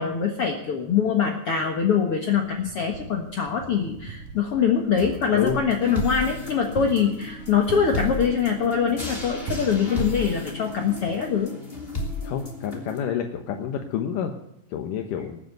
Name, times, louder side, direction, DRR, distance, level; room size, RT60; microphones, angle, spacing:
voice 1, 0.0-11.5, left 7 dB, 55° left, 2 dB, 1.9 m, -23 dB
Wind, 2.4-11.3, right 4 dB, 85° right, 3.5 m, -40 dB
sound 1, 5.0-13.0, left 2 dB, 15° left, 3.0 m, -34 dB
voice 2, 12.2-14.3 14.7-15.4, left 8 dB, 75° left, 5 dB, 2.5 m, -28 dB
20.0 x 8.0 x 8.1 m, 0.79 s
omnidirectional pair, 4.0 m